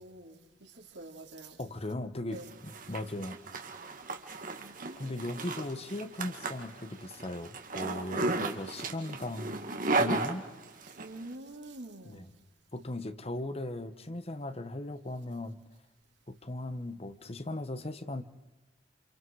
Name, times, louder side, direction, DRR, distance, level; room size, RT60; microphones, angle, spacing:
voice 1, 0.0-1.6 2.3-2.5 4.6-5.1 8.4-9.5 10.8-12.3, right 2 dB, 75° right, 3.4 m, -48 dB
voice 2, 1.6-3.4 5.0-9.6 10.0-10.4 12.0-12.3 12.7-15.6 16.3-18.2, left 1 dB, 35° left, 1.1 m, -38 dB
Zipper (clothing), 2.4-11.1, right 3 dB, 50° right, 2.0 m, -35 dB
28.5 x 28.0 x 4.8 m
head